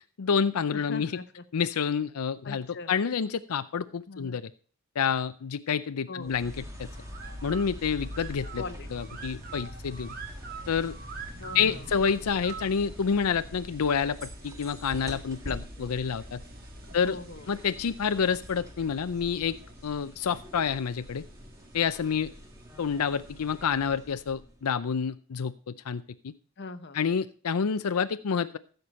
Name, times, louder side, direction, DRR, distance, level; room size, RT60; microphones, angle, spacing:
voice 1, 0.2-1.1 1.5-4.5 5.0-6.5 6.8-6.9 7.4-8.6 8.9-10.1 10.7-11.0 11.5-16.4 16.9-17.2 17.5-19.6 19.8-21.2 21.7-22.3 22.8-26.3 26.9-28.6, left 6 dB, 90° left, 11 dB, 0.5 m, -28 dB
voice 2, 0.7-1.4 2.4-2.9 4.1-4.4 6.1-6.5 8.6-8.9 11.4-11.9 16.8-17.6 26.6-27.2, left 3 dB, 50° left, 10 dB, 0.9 m, -41 dB
sound 1, 6.2-24.7, equal, 15° right, 1.5 m, -44 dB
sound 2, 6.7-23.6, right 5 dB, 40° right, 1.6 m, -49 dB
14.5 x 6.7 x 4.2 m, 0.41 s
head